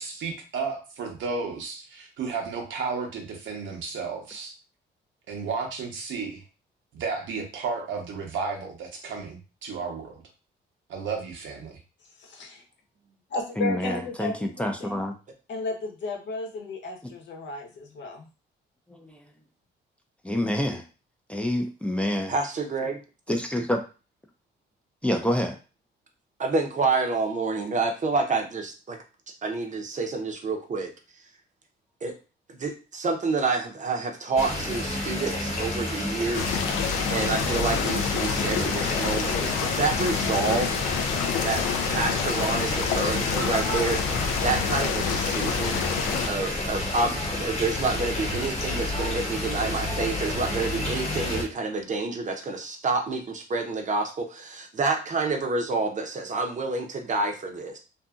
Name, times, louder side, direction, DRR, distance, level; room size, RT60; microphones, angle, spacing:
voice 1, 0.0-4.5 5.3-6.4 6.9-10.2 10.9-11.8, right 5 dB, 75° right, 2 dB, 0.9 m, -33 dB
voice 2, 12.2-12.6 13.3-15.0 15.5-18.3, left 2 dB, 65° left, 1 dB, 0.9 m, -34 dB
voice 3, 13.6-15.1 18.9-19.2 20.2-20.8 21.3-22.3 23.3-23.8 25.0-25.6, left 1 dB, 5° left, 3 dB, 0.4 m, -27 dB
voice 4, 22.3-23.0 26.4-29.0 29.4-30.9 32.0-32.1 32.5-36.6 37.1-40.8 41.4-45.8 46.3-57.8, right 3 dB, 40° right, 3 dB, 0.7 m, -28 dB
sound 1, 34.4-51.4, left 1 dB, 30° left, 1.1 m, -30 dB
sound 2, 36.3-46.3, left 7 dB, 90° left, 0.4 m, -28 dB
2.6 x 2.6 x 2.3 m, 0.33 s
cardioid pair, 90°, 20 cm